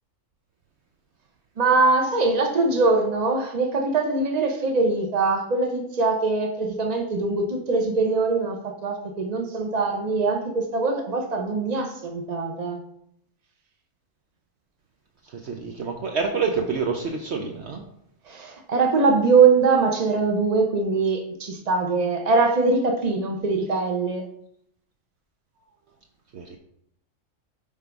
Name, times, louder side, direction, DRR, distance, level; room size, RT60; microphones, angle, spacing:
voice 1, 1.6-12.8 18.3-24.3, right 4 dB, 35° right, 3 dB, 1.0 m, -22 dB
voice 2, 15.3-17.8 26.3-26.6, right 5 dB, 60° right, 3 dB, 1.0 m, -27 dB
9.3 x 3.8 x 4.6 m, 0.74 s
omnidirectional pair, 1.4 m